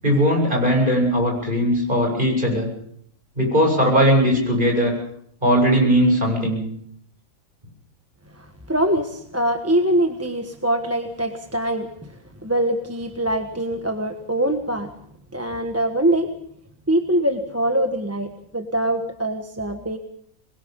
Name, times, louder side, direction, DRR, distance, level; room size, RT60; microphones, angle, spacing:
voice 1, 0.0-2.7 3.4-4.9 5.4-6.6, equal, 35° right, 1 dB, 8.1 m, -19 dB
voice 2, 8.3-14.9 15.3-16.3 16.9-20.0, right 1 dB, 10° right, 5 dB, 1.3 m, -23 dB
26.0 x 21.5 x 5.4 m, 0.68 s
omnidirectional pair, 1.5 m